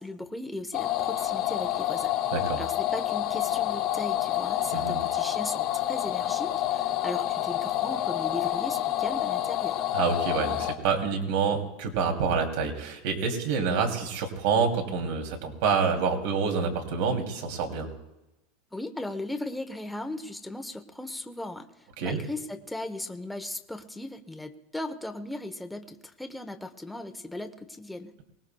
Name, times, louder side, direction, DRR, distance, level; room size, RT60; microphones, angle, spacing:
voice 1, 0.0-2.1 2.6-9.9 18.7-28.1, left 1 dB, 5° left, 6 dB, 0.7 m, -37 dB
sound 1, 0.7-10.7, left 13 dB, 50° left, 1.2 m, -28 dB
voice 2, 9.9-17.9 22.0-22.2, right 5 dB, 70° right, 3 dB, 2.7 m, -27 dB
23.5 x 19.0 x 2.2 m, 0.95 s
supercardioid pair, 150°, 0 cm